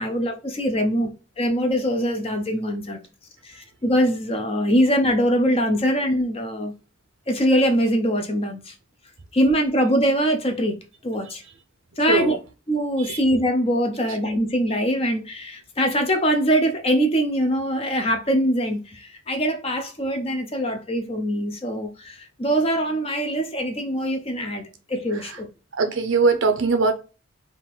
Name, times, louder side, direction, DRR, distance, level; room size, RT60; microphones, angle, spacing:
voice 1, 0.0-3.0 3.4-6.7 7.3-8.7 9.3-10.8 11.0-11.4 12.0-12.4 12.7-25.5, equal, 30° left, 0.6 m, -23 dB
voice 2, 25.8-26.9, right 4 dB, 70° right, 0.6 m, -21 dB
3.7 x 2.5 x 4.3 m
head